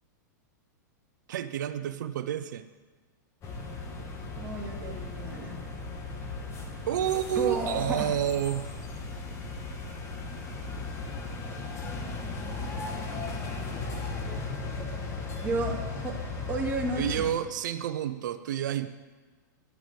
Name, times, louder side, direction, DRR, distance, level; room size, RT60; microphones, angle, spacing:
voice 1, 1.3-2.6 6.9-8.7 17.0-18.9, right 10 dB, 75° right, 10 dB, 0.7 m, -29 dB
sound 1, 3.4-17.3, left 3 dB, 30° left, 1.8 m, -36 dB
voice 2, 4.4-5.6 7.4-8.1 15.4-16.2 16.5-17.3, right 2 dB, 15° right, -3 dB, 2.2 m, -32 dB
10.5 x 6.3 x 8.4 m, 1.4 s
hypercardioid pair, 130°, 10 cm